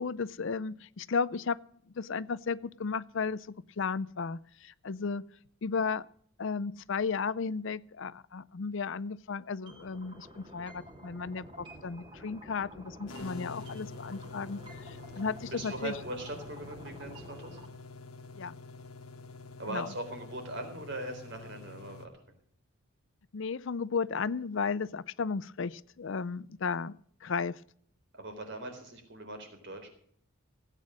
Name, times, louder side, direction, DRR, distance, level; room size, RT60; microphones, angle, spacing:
voice 1, 0.0-1.6 2.0-3.5 3.8-5.2 5.6-6.1 6.4-15.9 18.4-18.5 19.7-19.9 23.3-26.9 27.2-27.6, left 5 dB, 55° left, 18 dB, 0.5 m, -34 dB
sound 1, 9.7-17.7, equal, 25° right, 3.2 m, -50 dB
sound 2, 13.1-22.1, left 3 dB, 90° left, 1.6 m, -47 dB
voice 2, 15.5-17.6 19.6-22.1 28.1-29.9, right 1 dB, 55° right, 5 dB, 3.9 m, -40 dB
17.0 x 9.2 x 6.3 m, 0.62 s
head